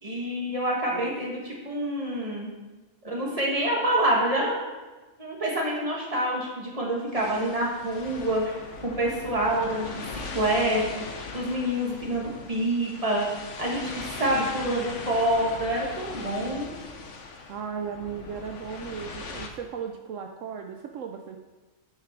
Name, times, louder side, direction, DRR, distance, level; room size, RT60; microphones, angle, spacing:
voice 1, 0.0-2.5 3.0-4.6 5.2-9.9 10.3-11.0 11.3-13.3 13.6-16.7, right 1 dB, 25° right, -3 dB, 2.1 m, -27 dB
sound 1, 7.1-19.5, left 4 dB, 65° left, 1.3 m, -40 dB
voice 2, 17.5-21.4, right 7 dB, 75° right, 4 dB, 1.0 m, -36 dB
10.5 x 6.7 x 4.8 m, 1.2 s
omnidirectional pair, 1.4 m